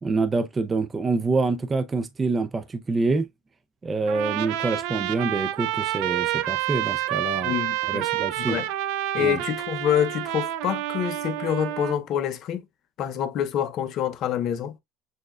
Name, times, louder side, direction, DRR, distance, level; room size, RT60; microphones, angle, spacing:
voice 1, 0.0-3.3 3.8-7.5 7.9-8.6 9.2-9.4, right 3 dB, 20° right, 0.5 m, -26 dB
Trumpet, 4.1-12.0, right 14 dB, 75° right, 0.4 m, -28 dB
voice 2, 7.4-8.1 8.4-8.7 9.1-12.6 13.0-14.8, left 9 dB, 55° left, 0.7 m, -26 dB
6.5 x 2.3 x 2.3 m
supercardioid pair, 110°, 0 cm